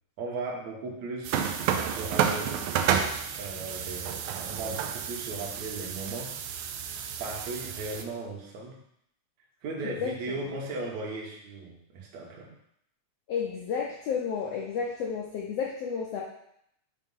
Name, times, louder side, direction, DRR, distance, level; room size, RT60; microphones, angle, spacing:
voice 1, 0.2-1.5 1.8-2.7 3.4-6.3 7.2-8.8 9.6-12.5, right 3 dB, 65° right, -1 dB, 2.3 m, -37 dB
sound 1, 1.2-8.0, right 8 dB, 80° right, 1.9 m, -30 dB
voice 2, 9.8-10.5 13.3-16.2, left 6 dB, 80° left, -2 dB, 1.4 m, -32 dB
7.4 x 3.0 x 5.4 m, 0.75 s
omnidirectional pair, 3.7 m